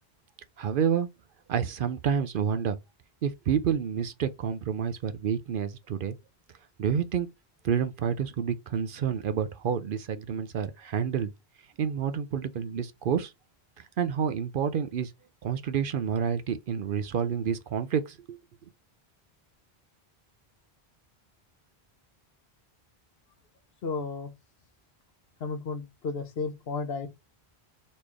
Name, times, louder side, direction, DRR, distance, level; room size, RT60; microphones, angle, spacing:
voice 1, 0.6-1.1 1.5-2.8 3.2-6.2 6.8-7.3 7.6-11.3 11.8-13.3 14.0-15.1 15.4-18.4, right 7 dB, 60° right, 0.7 m, -29 dB
voice 2, 23.8-24.3 25.4-27.1, left 4 dB, 70° left, 1.0 m, -33 dB
4.2 x 3.2 x 3.4 m
omnidirectional pair, 1.1 m